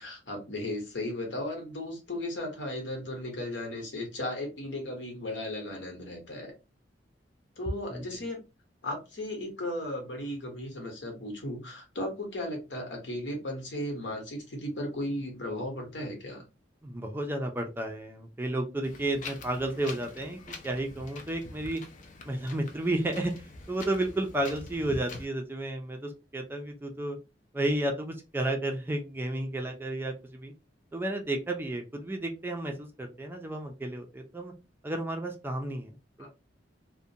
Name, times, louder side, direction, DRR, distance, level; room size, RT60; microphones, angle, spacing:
voice 1, 0.0-6.5 7.6-8.4 8.8-16.4 36.2-36.3, left 1 dB, 75° left, 2 dB, 1.1 m, -36 dB
voice 2, 16.8-21.8 22.3-27.2 27.5-30.5 30.9-34.5 34.8-36.3, right 1 dB, 10° right, 3 dB, 0.4 m, -32 dB
Wind, 18.8-25.2, left 3 dB, 45° left, 0.5 m, -45 dB
2.4 x 2.1 x 2.7 m, 0.27 s
head